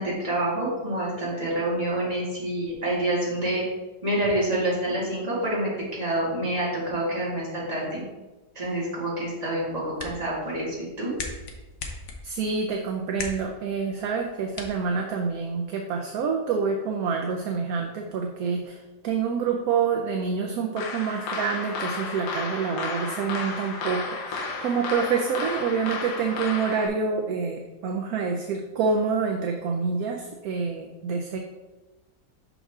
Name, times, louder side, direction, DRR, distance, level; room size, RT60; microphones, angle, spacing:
voice 1, 0.0-3.6 4.0-8.0 8.5-11.1, right 1 dB, 20° right, -7 dB, 2.2 m, -27 dB
sound 1, 9.6-15.6, left 3 dB, 55° left, 1.0 m, -41 dB
voice 2, 12.2-31.4, right 5 dB, 70° right, 2 dB, 1.0 m, -27 dB
sound 2, 20.8-26.9, left 4 dB, 70° left, 1.2 m, -33 dB
5.9 x 5.5 x 3.6 m, 1.1 s
omnidirectional pair, 1.9 m